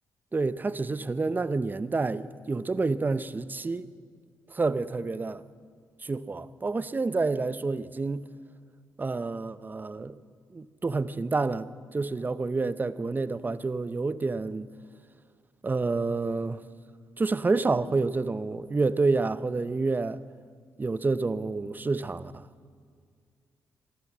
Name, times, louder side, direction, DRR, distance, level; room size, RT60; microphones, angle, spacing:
voice 1, 0.3-3.9 4.5-5.4 6.0-8.3 9.0-10.2 10.5-14.7 15.6-16.6 17.2-20.2 20.8-22.4, right 3 dB, 25° right, 0.7 m, -28 dB
14.5 x 11.5 x 7.3 m
supercardioid pair, 65°, 7 cm